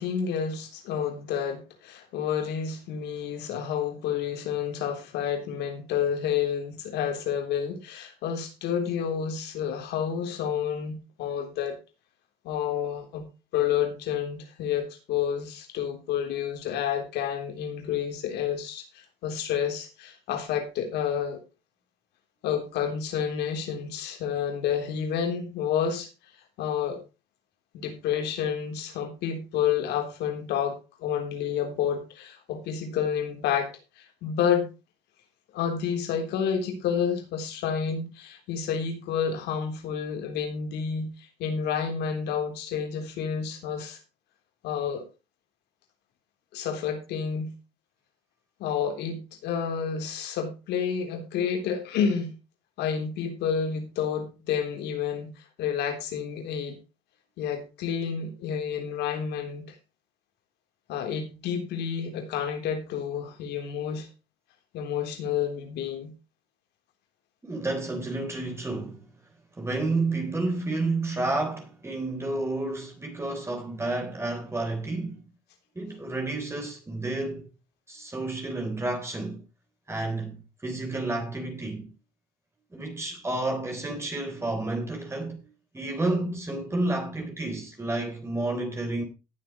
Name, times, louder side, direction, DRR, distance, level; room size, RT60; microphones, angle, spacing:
voice 1, 0.0-11.8 12.4-13.3 13.5-21.4 22.4-26.1 26.6-27.0 27.7-33.7 34.0-34.7 35.5-44.0 44.6-45.0 46.5-47.5 48.6-52.4 52.8-56.8 57.4-59.7 60.9-64.1 64.7-66.1, left 8 dB, 80° left, 3.5 m, -29 dB
voice 2, 67.4-69.1 69.6-75.2 75.8-77.4 77.9-79.4 79.9-81.9 82.7-85.4 85.7-89.0, right 2 dB, 15° right, 3.6 m, -30 dB
18.0 x 7.6 x 3.0 m
cardioid pair, 110°, 17 cm